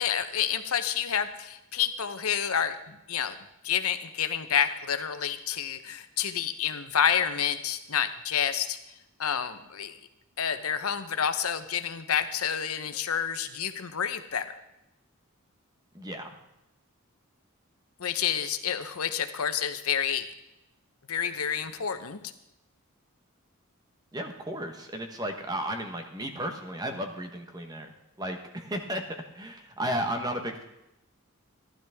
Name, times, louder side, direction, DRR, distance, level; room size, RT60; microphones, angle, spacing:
voice 1, 0.0-3.4 3.6-8.8 9.2-10.0 10.4-14.5 18.0-20.3 21.1-22.2, left 8 dB, 85° left, 10 dB, 0.9 m, -29 dB
voice 2, 15.9-16.3 24.1-27.9 28.2-30.6, equal, 20° right, 5 dB, 1.1 m, -34 dB
15.0 x 11.5 x 3.5 m, 0.91 s
head